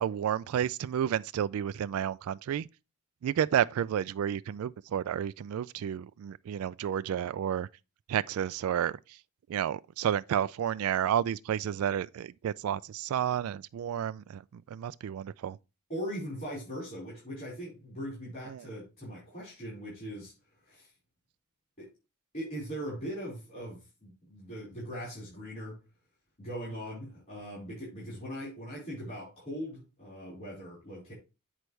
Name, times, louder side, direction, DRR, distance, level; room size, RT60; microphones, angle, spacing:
voice 1, 0.0-2.7 3.2-7.7 8.1-9.0 9.5-15.6 18.5-18.6, right 9 dB, 80° right, 0.3 m, -31 dB
voice 2, 15.9-20.3 20.6-20.9 21.8-21.9 22.3-25.8 26.4-31.1, equal, 40° left, 4.7 m, -40 dB
8.1 x 6.1 x 3.2 m
head